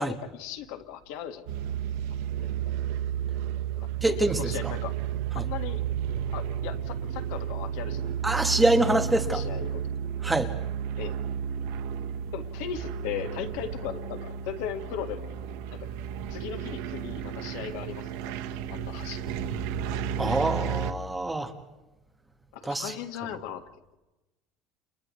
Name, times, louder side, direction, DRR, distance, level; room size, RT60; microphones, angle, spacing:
voice 1, 0.0-1.5 2.4-2.5 3.8-5.0 5.3-5.8 6.3-8.2 9.3-9.8 11.0-11.2 12.3-15.4 15.7-15.9 16.3-18.4 18.7-19.5 22.5-23.6, left 9 dB, 75° left, 5 dB, 1.7 m, -37 dB
sound 1, 1.5-20.9, right 8 dB, 90° right, 1.0 m, -32 dB
voice 2, 4.0-4.4 5.3-5.4 8.2-9.4 10.2-10.5 20.2-21.5 22.7-22.9, right 1 dB, 5° right, 4 dB, 1.4 m, -25 dB
30.0 x 30.0 x 3.2 m, 1.0 s
cardioid pair, 175°, 0 cm